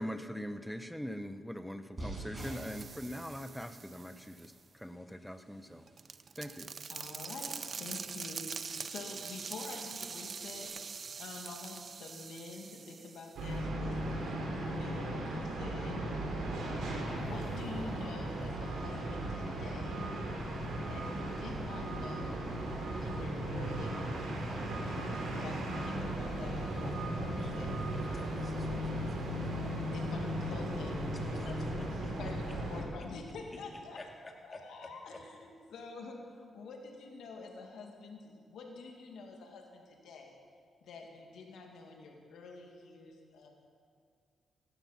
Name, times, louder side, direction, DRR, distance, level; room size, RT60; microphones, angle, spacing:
voice 1, 0.0-5.8 6.4-6.7, equal, ahead, 10 dB, 0.9 m, -42 dB
sound 1, 2.0-10.7, right 1 dB, 30° right, 5.0 m, -51 dB
sound 2, 2.4-4.5 5.5-13.4, right 5 dB, 50° right, 0.4 m, -44 dB
voice 2, 6.9-10.7 11.2-16.1 17.2-20.1 20.9-22.5 23.0-27.8 29.9-31.7 32.2-34.0 34.4-40.4 40.8-43.5, left 3 dB, 80° left, 2 dB, 2.2 m, -47 dB
sound 3, 13.4-32.8, right 1 dB, 85° right, 3.3 m, -36 dB
voice 3, 28.0-29.5 31.1-31.5 31.8-31.9 32.2-32.3 34.0-34.6 35.1-35.2, left 2 dB, 30° left, 1 dB, 2.3 m, -52 dB
16.5 x 12.0 x 5.9 m, 2.1 s
cardioid pair, 75°, 0 cm